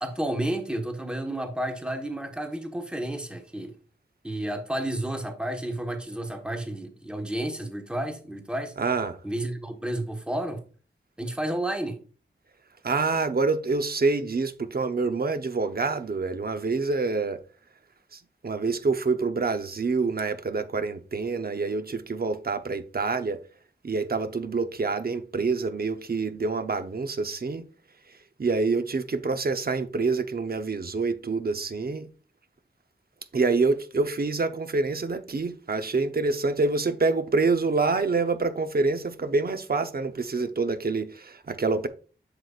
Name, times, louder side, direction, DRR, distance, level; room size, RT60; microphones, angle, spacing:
voice 1, 0.0-3.7 4.2-8.7 9.2-10.6 11.2-12.0, right 1 dB, 5° right, 1.3 m, -31 dB
voice 2, 8.8-9.2 12.8-17.4 18.1-23.4 23.8-27.7 28.4-32.1 33.3-41.9, right 4 dB, 50° right, 0.8 m, -26 dB
7.6 x 6.9 x 2.4 m
wide cardioid pair, 75°, 20 cm